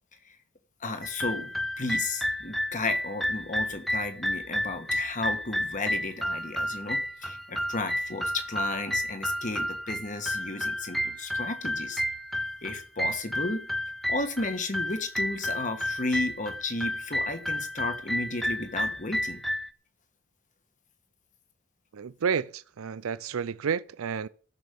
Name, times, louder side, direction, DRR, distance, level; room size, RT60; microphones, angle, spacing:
voice 1, 0.8-12.0 12.6-13.7 14.1-19.4, left 2 dB, 35° left, 1.6 m, -33 dB
sound 1, 1.0-19.7, equal, ahead, 0.5 m, -31 dB
voice 2, 21.9-24.3, right 6 dB, 75° right, 0.5 m, -30 dB
14.5 x 6.2 x 6.8 m
head